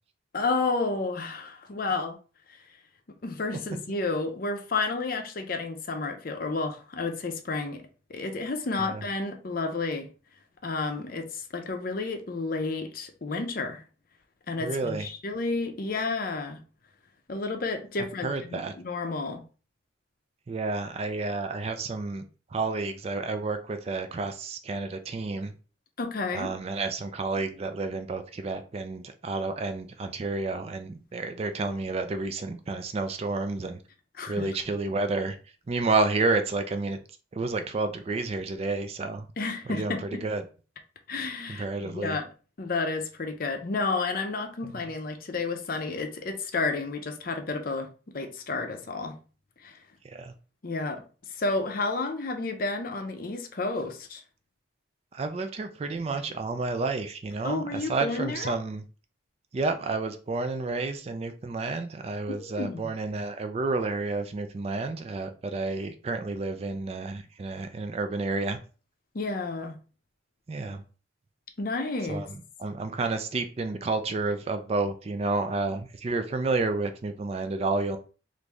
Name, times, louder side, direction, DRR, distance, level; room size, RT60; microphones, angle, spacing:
voice 1, 0.3-2.2 2.5-2.6 3.1-10.1 10.6-13.8 14.5-16.6 17.3-19.4 26.0-26.5 34.2-34.6 39.4-40.2 41.1-42.3 42.6-49.2 49.6-49.8 50.6-54.2 57.4-58.5 62.3-62.9 69.1-69.8 71.6-72.2, left 3 dB, 45° left, 0.5 m, -31 dB
voice 2, 14.6-15.1 18.2-18.7 20.5-22.2 22.5-25.5 26.3-33.8 34.3-35.4 35.7-37.0 37.3-39.3 39.7-39.9 40.2-40.4 41.6-42.1 50.0-50.3 55.1-58.8 59.5-68.6 70.5-70.8 72.1-72.3 72.6-78.0, right 3 dB, 30° right, 0.3 m, -30 dB
3.0 x 2.6 x 3.4 m
head